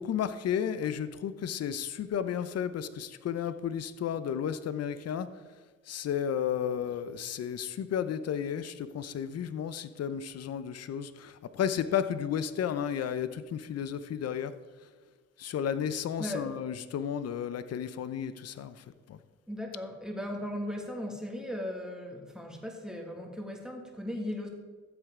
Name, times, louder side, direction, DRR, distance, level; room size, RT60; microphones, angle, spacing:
voice 1, 0.0-5.4 5.9-14.5 15.4-19.2, left 8 dB, 55° left, 13 dB, 0.7 m, -33 dB
voice 2, 16.2-16.5 19.5-24.5, left 1 dB, ahead, 1 dB, 2.1 m, -37 dB
14.0 x 8.0 x 3.8 m, 1.4 s
cardioid pair, 90°, 30 cm